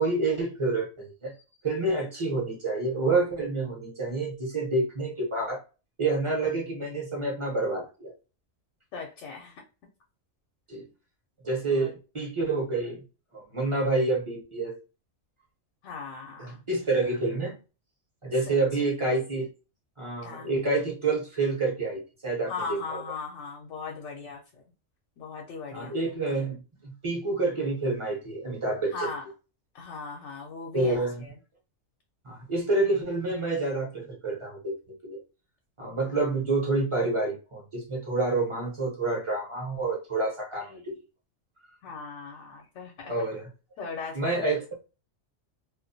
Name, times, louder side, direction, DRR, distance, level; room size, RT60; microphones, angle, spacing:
voice 1, 0.0-1.4 1.6-5.6 6.0-8.1 10.7-10.8 11.4-13.0 13.3-14.8 16.4-17.6 18.2-19.5 20.0-23.0 25.7-29.1 30.7-31.2 32.2-34.8 35.0-35.2 35.8-41.0 43.1-43.5 44.1-44.8, right 3 dB, 30° right, -1 dB, 0.7 m, -28 dB
voice 2, 8.9-9.6 11.7-11.9 15.8-16.6 18.5-18.6 20.2-20.5 22.5-24.4 25.2-25.9 28.9-29.2 29.7-31.0 31.2-31.3 36.0-36.2 41.8-43.1 43.8-44.5, left 4 dB, 75° left, 0 dB, 1.0 m, -38 dB
2.4 x 2.2 x 2.6 m, 0.32 s
omnidirectional pair, 1.3 m